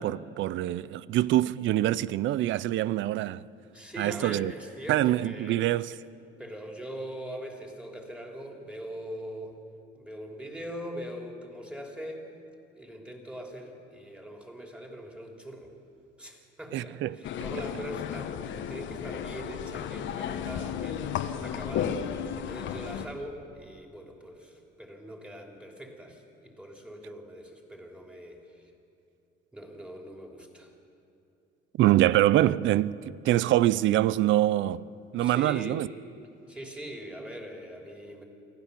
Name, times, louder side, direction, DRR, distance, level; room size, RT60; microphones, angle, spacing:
voice 1, 0.0-3.4 4.0-4.5 4.9-6.0 16.7-17.2 31.8-34.8 35.1-35.9, right 14 dB, 65° right, 0.5 m, -25 dB
voice 2, 3.7-5.6 6.4-9.6 9.9-12.3 12.7-15.7 16.2-22.0 22.4-28.7 29.5-30.7 35.2-35.8 36.5-38.2, equal, 5° right, 3.2 m, -42 dB
sound 1, 17.2-23.1, left 8 dB, 65° left, 1.2 m, -34 dB
24.5 x 15.5 x 6.9 m
cardioid pair, 110°, 21 cm